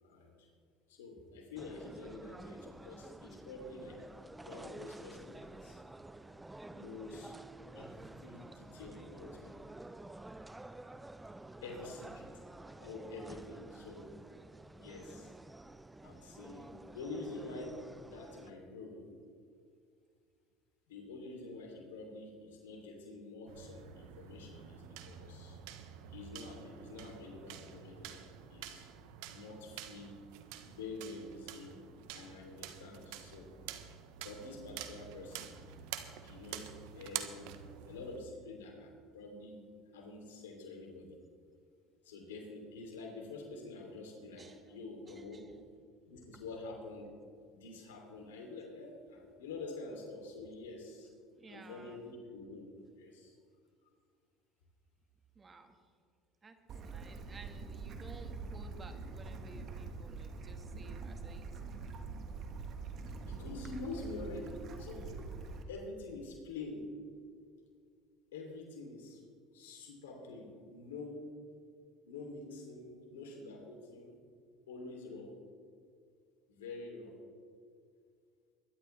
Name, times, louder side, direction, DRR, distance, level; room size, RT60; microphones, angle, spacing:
voice 1, 0.0-0.5 0.9-4.1 4.4-5.8 6.7-7.4 7.8-9.6 11.6-12.3 12.8-14.1 14.8-15.3 16.0-19.1 20.9-25.6 26.1-28.9 29.3-30.2 30.6-31.8 32.1-33.5 34.2-35.6 36.2-37.5 37.8-39.7 39.9-41.2 42.0-45.5 46.0-47.1 47.5-51.1 51.5-52.7 52.9-53.3 63.0-65.3 65.7-66.9 68.3-69.2 69.5-71.3 72.0-74.2 74.7-75.4 76.5-77.2, left 3 dB, 85° left, 2 dB, 3.1 m, -47 dB
sound 1, 1.6-18.5, right 2 dB, 10° right, 0.6 m, -51 dB
voice 2, 11.5-11.9 44.4-44.8 45.1-45.6 51.3-52.0 55.3-55.9 56.4-56.6 56.8-61.6, right 3 dB, 30° right, 6 dB, 1.7 m, -55 dB
sound 2, 23.5-38.2, right 10 dB, 70° right, 1.0 m, -48 dB
Bird / Stream, 56.7-65.6, right 4 dB, 50° right, 1.6 m, -44 dB
22.5 x 12.0 x 3.4 m, 2.2 s
hypercardioid pair, 75°, 0 cm